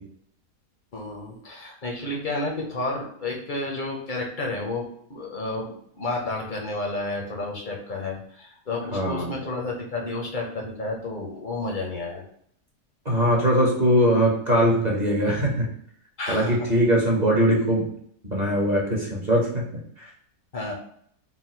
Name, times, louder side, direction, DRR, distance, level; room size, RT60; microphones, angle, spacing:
voice 1, 0.9-12.2 16.2-16.6 20.5-20.7, left 2 dB, 50° left, 0 dB, 0.6 m, -31 dB
voice 2, 8.9-9.3 13.0-15.7 16.3-17.9 18.3-19.6 20.0-20.1, equal, 35° right, -3 dB, 0.8 m, -21 dB
4.0 x 2.2 x 4.2 m, 0.67 s
omnidirectional pair, 1.7 m